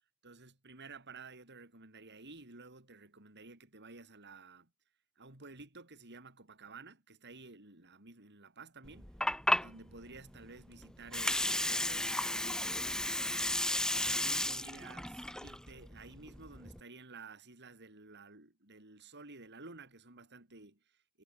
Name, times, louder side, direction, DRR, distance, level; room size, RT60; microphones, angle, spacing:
voice 1, 0.2-4.7 5.2-9.2 9.6-13.5 13.9-21.2, right 3 dB, 50° right, 4.8 m, -53 dB
Water, 8.8-16.8, left 1 dB, 5° left, 0.8 m, -34 dB
head